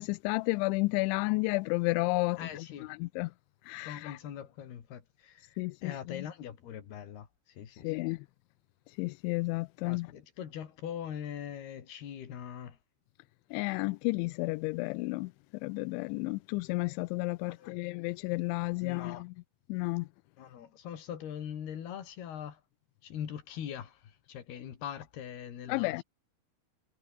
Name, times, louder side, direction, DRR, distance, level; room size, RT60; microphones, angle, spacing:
voice 1, 0.0-2.6 3.0-3.3 3.7-4.2 5.6-6.2 7.7-8.3 9.0-10.1 13.5-15.3 15.6-19.3 19.7-20.1 25.7-26.0, left 24 dB, 90° left, 2.9 m, -32 dB
voice 2, 2.4-2.9 3.8-8.2 9.8-12.8 17.4-17.8 18.8-19.2 20.4-22.6 23.0-26.0, left 9 dB, 60° left, 4.5 m, -42 dB
omnidirectional pair, 5.3 m